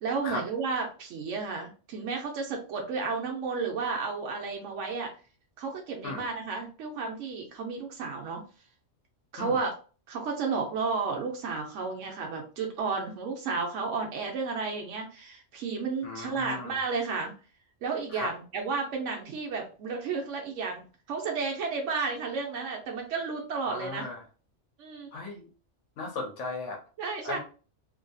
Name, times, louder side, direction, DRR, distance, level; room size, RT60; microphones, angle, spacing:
voice 1, 0.0-5.1 5.6-8.4 9.3-9.7 10.1-17.3 17.8-24.1 24.8-25.1 27.0-27.4, right 4 dB, 80° right, 1 dB, 1.0 m, -32 dB
voice 2, 16.0-16.8 18.1-18.3 23.7-24.2 25.1-25.5 26.0-26.8 27.2-27.4, left 3 dB, 80° left, 1 dB, 1.0 m, -36 dB
2.7 x 2.6 x 2.2 m, 0.36 s
omnidirectional pair, 1.2 m